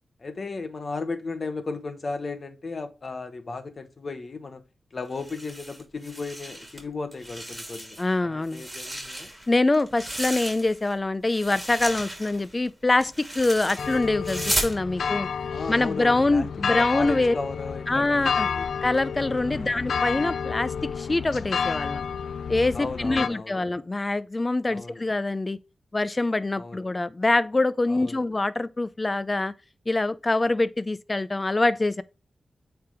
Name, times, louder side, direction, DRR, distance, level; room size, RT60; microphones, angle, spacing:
voice 1, 0.2-4.6 4.9-9.3 15.5-18.7 19.5-19.8 22.7-23.6 24.7-25.0 26.6-26.8 27.9-28.2, left 3 dB, 50° left, 1.1 m, -35 dB
sound 1, 5.1-6.8 7.1-8.1 8.4-10.9 11.3-14.8, right 1 dB, 15° right, 2.4 m, -34 dB
voice 2, 8.0-8.6 9.5-15.3 15.7-17.3 17.9-18.5 18.8-22.0 22.5-25.6 25.9-29.5 29.9-32.0, left 2 dB, 30° left, 0.5 m, -24 dB
sound 2, 13.8-23.3, left 6 dB, 85° left, 0.4 m, -30 dB
8.8 x 3.5 x 3.5 m
wide cardioid pair, 80°, 0 cm